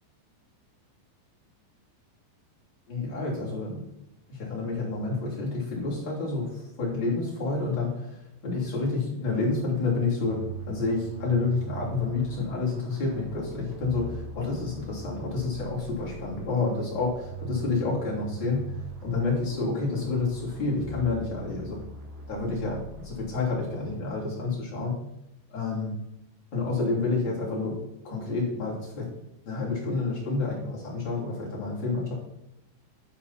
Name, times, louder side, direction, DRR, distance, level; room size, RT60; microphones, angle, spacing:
voice 1, 2.9-3.8 4.3-18.7 19.0-21.8 22.3-25.0 25.5-25.9 26.5-27.8 28.0-29.1 29.5-32.1, left 3 dB, 30° left, -5 dB, 3.1 m, -29 dB
sound 1, 10.2-24.3, right 4 dB, 70° right, 4.3 m, -42 dB
10.5 x 8.6 x 4.3 m, 0.86 s
omnidirectional pair, 5.4 m